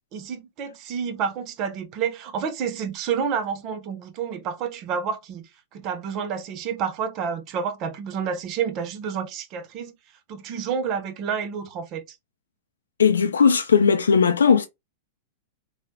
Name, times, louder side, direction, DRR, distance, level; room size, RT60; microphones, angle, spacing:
voice 1, 0.1-9.9 10.3-12.2, right 7 dB, 45° right, 0.7 m, -29 dB
voice 2, 13.0-14.7, left 6 dB, 85° left, 0.4 m, -18 dB
3.1 x 2.3 x 2.8 m
hypercardioid pair, 105°, 0 cm